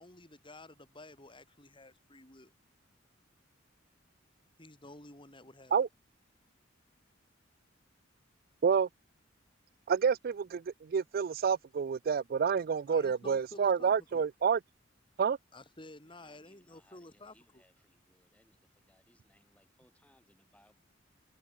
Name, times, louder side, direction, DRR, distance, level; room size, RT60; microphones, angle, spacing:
voice 1, 0.0-2.5 4.6-5.7 12.8-14.2 15.5-17.6, left 2 dB, 25° left, 5.7 m, -52 dB
voice 2, 9.9-14.6 15.2-15.4, right 6 dB, 50° right, 0.4 m, -29 dB
voice 3, 16.2-20.8, left 1 dB, 5° left, 6.8 m, -68 dB
head